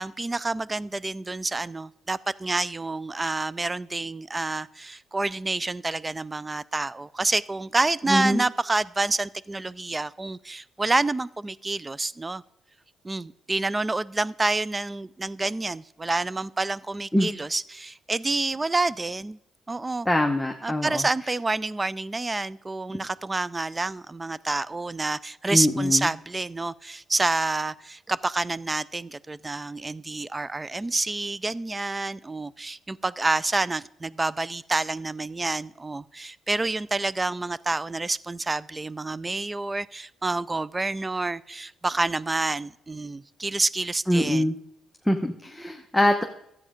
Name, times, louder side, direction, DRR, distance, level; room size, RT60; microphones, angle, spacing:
voice 1, 0.0-12.4 13.0-19.4 19.7-20.1 20.6-44.5, right 2 dB, 20° right, 21 dB, 0.4 m, -28 dB
voice 2, 8.1-8.4 17.1-17.3 20.0-21.1 25.5-26.1 44.1-44.6 45.0-46.2, left 1 dB, 5° left, 3 dB, 0.9 m, -23 dB
12.5 x 8.4 x 5.0 m, 0.79 s
cardioid pair, 90°, 0 cm